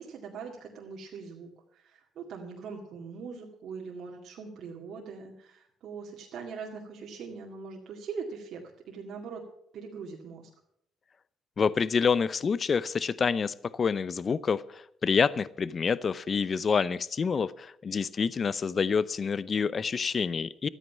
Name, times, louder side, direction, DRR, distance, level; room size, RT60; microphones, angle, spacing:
voice 1, 0.0-8.6 8.9-9.4 9.7-10.5, right 5 dB, 70° right, -1 dB, 2.1 m, -41 dB
voice 2, 11.6-20.7, left 5 dB, 45° left, 19 dB, 0.6 m, -27 dB
13.0 x 9.2 x 7.2 m, 0.73 s
supercardioid pair, 75°, 0 cm